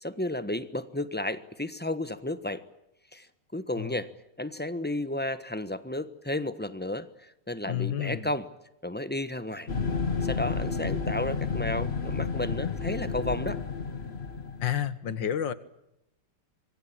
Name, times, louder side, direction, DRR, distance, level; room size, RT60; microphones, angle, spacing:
voice 1, 0.0-2.6 3.1-3.3 3.5-4.1 4.4-8.5 8.8-9.7 10.2-13.6, left 1 dB, 5° left, 12 dB, 1.1 m, -32 dB
voice 2, 7.7-8.3 14.6-15.5, left 10 dB, 80° left, 14 dB, 2.1 m, -30 dB
sound 1, 9.7-14.9, left 5 dB, 35° left, 1.7 m, -31 dB
26.0 x 23.0 x 8.9 m, 0.83 s
omnidirectional pair, 2.0 m